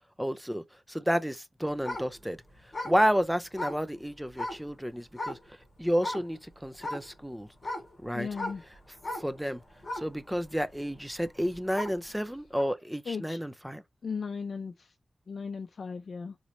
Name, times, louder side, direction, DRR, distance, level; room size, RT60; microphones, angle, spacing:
voice 1, 0.2-2.4 2.8-5.4 5.8-7.5 8.0-8.3 9.2-9.6 9.9-13.8, equal, ahead, 0.4 m, -30 dB
sound 1, 1.7-4.7 5.1-5.6 5.9-6.3 6.8-12.1 12.6-12.7, left 1 dB, 35° left, 1.5 m, -38 dB
voice 2, 8.1-8.6 13.1-13.4 14.0-15.0 15.3-16.4, left 5 dB, 60° left, 0.4 m, -36 dB
3.8 x 3.1 x 3.0 m
wide cardioid pair, 150°, 0 cm